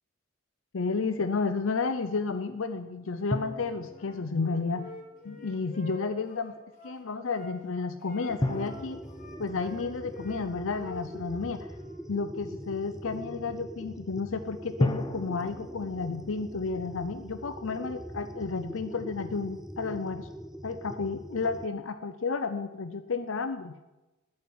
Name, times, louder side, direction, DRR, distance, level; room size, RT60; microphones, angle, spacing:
voice 1, 0.7-4.9 5.2-6.5 6.8-9.0 9.4-11.7 12.1-20.3 20.6-23.7, left 4 dB, 65° left, 10 dB, 0.6 m, -32 dB
sound 1, 3.3-5.6 8.4-11.3 14.8-16.7, left 1 dB, 20° left, 0.8 m, -35 dB
Wind instrument woodwind instrument, 3.9-7.5 8.0-10.5 10.7-12.0, left 2 dB, 35° left, 2.5 m, -48 dB
sound 2, 8.3-21.7, equal, ahead, 0.5 m, -43 dB
10.5 x 8.7 x 9.5 m, 1.1 s
head